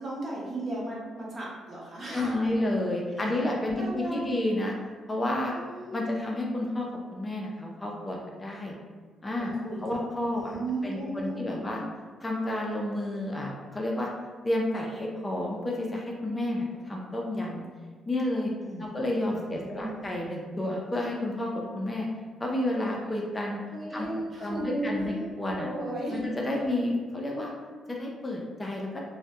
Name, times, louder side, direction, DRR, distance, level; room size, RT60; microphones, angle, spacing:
voice 1, 0.0-2.4 3.2-3.3 3.8-4.4 5.5-6.0 9.4-10.0 10.3-11.8 18.6-18.8 19.3-20.1 23.7-26.2, right 1 dB, 40° right, -5 dB, 0.7 m, -35 dB
voice 2, 2.1-4.7 5.1-5.5 5.9-8.8 9.2-9.5 9.8-10.6 10.8-11.8 12.2-14.1 14.4-17.6 18.1-18.5 18.8-22.1 22.4-23.6 23.9-24.1 24.4-25.7 26.1-27.5 27.9-29.0, left 1 dB, 20° left, -1 dB, 0.3 m, -30 dB
2.1 x 2.0 x 2.8 m, 1.5 s
cardioid pair, 90°, 0 cm